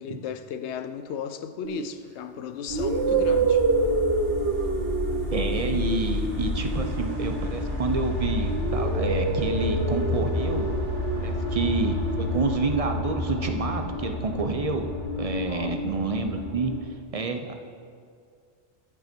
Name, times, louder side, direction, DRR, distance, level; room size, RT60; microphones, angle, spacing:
voice 1, 0.0-3.7 15.5-15.8, left 8 dB, 80° left, 0.9 m, -35 dB
sound 1, 1.6-1.9 2.7-8.0 8.5-12.4, right 4 dB, 75° right, 1.2 m, -28 dB
sound 2, 2.7-16.8, left 2 dB, 55° right, 2.0 m, -30 dB
voice 2, 5.3-10.7 11.2-14.9 15.2-16.7 17.1-17.5, right 3 dB, 40° right, 0.7 m, -28 dB
11.0 x 8.6 x 4.4 m
omnidirectional pair, 1.2 m